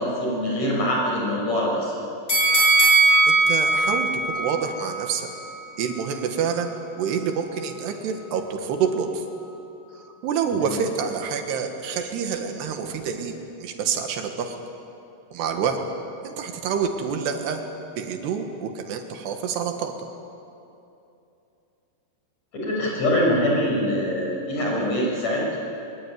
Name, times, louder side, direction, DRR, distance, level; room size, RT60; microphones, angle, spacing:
voice 1, 0.0-1.9 10.5-10.7 22.5-25.5, equal, 40° left, -3 dB, 8.0 m, -24 dB
sound 1, 2.3-5.4 5.8-5.9, right 3 dB, 15° left, 6.4 m, -20 dB
voice 2, 2.9-5.3 5.8-6.7 7.0-9.2 10.2-13.3 13.6-14.6 15.3-15.8 16.2-17.6 18.0-20.1, right 6 dB, 85° right, 5 dB, 3.8 m, -27 dB
23.0 x 22.0 x 9.4 m, 2.8 s
omnidirectional pair, 4.7 m